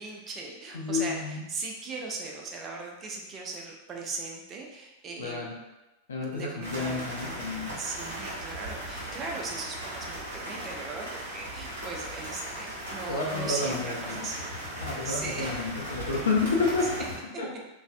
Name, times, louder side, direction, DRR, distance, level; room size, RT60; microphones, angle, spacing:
voice 1, 0.0-5.5 6.3-7.1 7.7-14.5 15.0-15.7 16.8-16.9, right 3 dB, 25° right, 0 dB, 0.4 m, -38 dB
voice 2, 0.7-1.4 5.2-5.5 6.1-7.8 13.1-14.2 14.8-17.0 17.4-17.5, left 3 dB, 65° left, -1 dB, 0.4 m, -30 dB
sound 1, 6.6-17.2, right 1 dB, 65° right, 0.8 m, -38 dB
2.4 x 2.1 x 2.4 m, 1.0 s
figure-of-eight pair, 90°, 0 cm